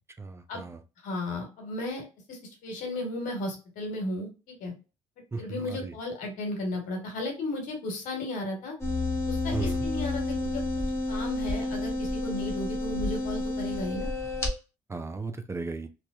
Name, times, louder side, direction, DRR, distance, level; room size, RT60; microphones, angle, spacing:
voice 1, 0.2-0.8 5.3-5.9 9.5-9.9 14.9-15.9, right 4 dB, 20° right, 8 dB, 0.4 m, -35 dB
voice 2, 1.0-4.7 5.4-8.7 9.2-10.6 11.1-14.1, left 2 dB, 75° left, 2 dB, 1.1 m, -34 dB
sound 1, 8.8-14.5, left 2 dB, 20° left, 1.1 m, -30 dB
2.7 x 2.1 x 2.2 m, 0.30 s
hypercardioid pair, 60°, 14 cm